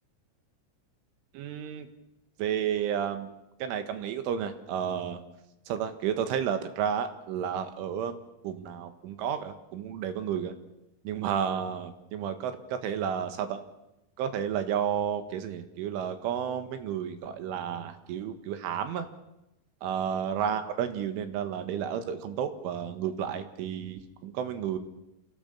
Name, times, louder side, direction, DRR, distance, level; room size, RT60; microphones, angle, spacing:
voice 1, 1.3-1.9 2.4-3.3 3.6-5.2 5.7-8.2 8.4-10.6 11.0-13.6 14.2-19.1 19.8-24.8, right 8 dB, 85° right, 8 dB, 4.0 m, -31 dB
28.5 x 16.5 x 7.2 m, 0.91 s
omnidirectional pair, 5.6 m